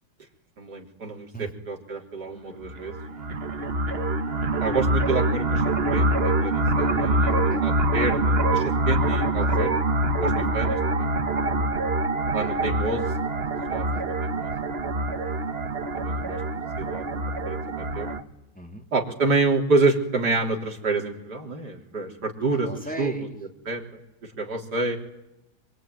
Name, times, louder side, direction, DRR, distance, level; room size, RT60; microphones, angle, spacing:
voice 1, 0.6-2.9 4.6-7.3 7.6-9.7 10.2-11.1 12.3-13.0 13.7-13.9 14.2-14.5 15.9-16.4 16.8-17.1 17.5-18.1 18.9-22.7 23.0-23.3 23.7-23.8 24.4-25.0, right 3 dB, 50° right, 1 dB, 4.0 m, -27 dB
sound 1, 2.6-18.2, right 2 dB, 35° right, 1.2 m, -25 dB
voice 2, 3.1-3.4 7.3-7.7 9.4-9.5 10.1-10.2 13.9-14.1 15.2-15.6 18.5-18.9 22.5-23.4, right 1 dB, 5° left, 2 dB, 2.4 m, -38 dB
24.5 x 22.5 x 9.4 m, 0.90 s
omnidirectional pair, 2.2 m